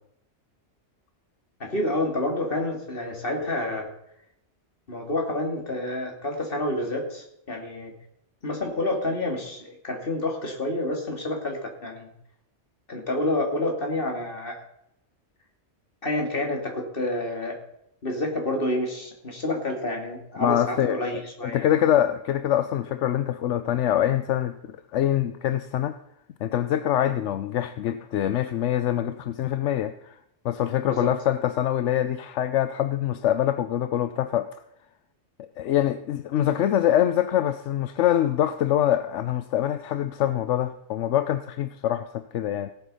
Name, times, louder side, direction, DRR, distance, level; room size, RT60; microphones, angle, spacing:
voice 1, 1.6-3.9 4.9-7.9 8.4-12.1 12.9-14.5 16.0-17.5 18.0-21.7 30.9-31.1, left 1 dB, 50° left, 2 dB, 2.8 m, -28 dB
voice 2, 20.4-21.0 21.4-26.0 26.4-30.2 30.4-34.5 35.4-42.7, left 11 dB, 80° left, 11 dB, 1.0 m, -24 dB
17.5 x 8.1 x 5.5 m, 0.79 s
omnidirectional pair, 1.2 m